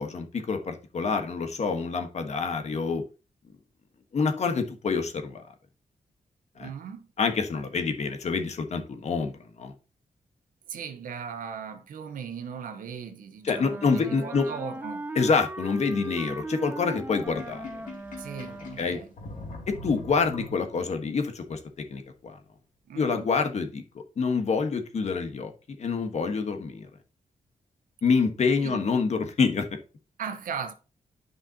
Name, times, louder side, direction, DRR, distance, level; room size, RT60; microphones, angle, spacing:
voice 1, 0.0-3.0 4.1-5.4 6.6-6.7 7.2-9.7 13.4-14.5 15.1-17.8 18.8-19.0 19.7-22.4 22.9-23.8 24.2-26.9 28.0-29.8, left 5 dB, 55° left, 1.5 m, -27 dB
voice 2, 6.6-7.1 10.7-15.1 18.2-19.1 22.9-23.3 28.6-28.8 30.2-30.7, right 7 dB, 90° right, 1.2 m, -38 dB
Wind instrument woodwind instrument, 13.4-19.0, right 2 dB, 15° right, 0.6 m, -38 dB
Sink (filling or washing), 17.3-21.0, left 2 dB, 75° left, 2.3 m, -42 dB
9.9 x 5.4 x 3.0 m
cardioid pair, 95°, 14 cm